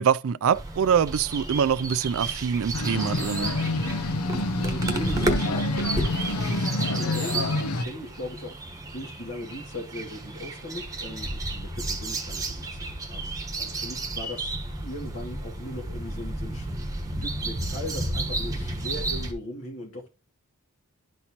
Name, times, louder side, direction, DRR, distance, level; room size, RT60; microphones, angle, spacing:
voice 1, 0.0-3.5, right 7 dB, 65° right, 0.4 m, -24 dB
sound 1, 0.5-19.3, right 2 dB, 15° right, 1.1 m, -32 dB
sound 2, 2.7-7.8, left 2 dB, 80° left, 0.8 m, -27 dB
voice 2, 4.6-5.7 6.3-8.6 8.9-16.7 17.2-20.1, left 1 dB, 65° left, 2.1 m, -39 dB
11.5 x 4.3 x 2.9 m
head